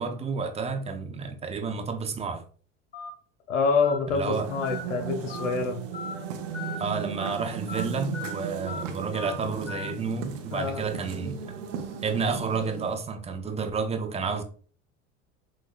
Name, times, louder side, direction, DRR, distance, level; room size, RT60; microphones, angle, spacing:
voice 1, 0.0-2.4 4.1-4.5 6.8-11.4 12.0-14.4, right 5 dB, 20° right, 0.4 m, -30 dB
Telephone, 2.9-3.1 3.8-4.0 4.6-4.8 5.3-5.5 5.9-6.1 6.5-6.8 7.2-7.3 7.7-7.8 8.1-8.3 8.7-8.8 9.1-9.3 9.7-9.9, left 5 dB, 25° left, 1.1 m, -37 dB
voice 2, 3.5-5.8 10.5-10.8, left 5 dB, 80° left, 0.8 m, -26 dB
sound 1, 4.1-13.1, right 7 dB, 80° right, 0.8 m, -36 dB
6.0 x 2.1 x 2.4 m
hypercardioid pair, 95°, 38 cm